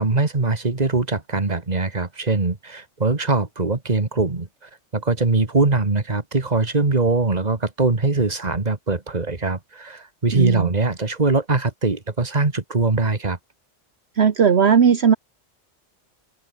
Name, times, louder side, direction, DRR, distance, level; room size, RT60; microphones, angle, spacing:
voice 1, 0.0-13.4, right 3 dB, 35° right, 2.2 m, -22 dB
voice 2, 10.3-10.7 14.2-15.2, right 7 dB, 60° right, 1.4 m, -16 dB
omnidirectional pair, 1.2 m